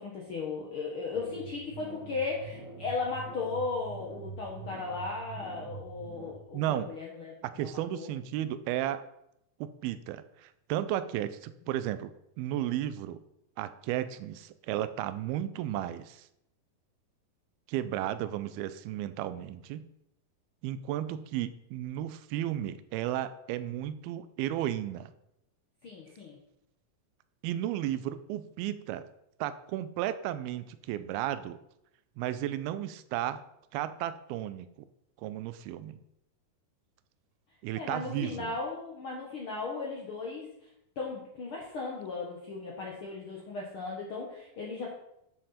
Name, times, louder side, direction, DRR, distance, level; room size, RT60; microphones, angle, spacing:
voice 1, 0.0-8.1 25.8-26.4 37.8-40.5 41.0-44.9, left 4 dB, 65° left, -2 dB, 1.3 m, -36 dB
sound 1, 1.1-6.3, right 4 dB, 40° right, 1.8 m, -45 dB
voice 2, 6.5-6.9 7.4-9.0 9.6-12.1 12.4-13.2 13.6-16.3 17.7-19.9 20.6-25.1 27.4-29.0 29.4-31.6 32.2-33.4 33.7-34.7 35.2-36.0 37.6-38.5, right 12 dB, 85° right, 13 dB, 2.5 m, -34 dB
11.0 x 6.7 x 4.2 m, 0.80 s
omnidirectional pair, 4.3 m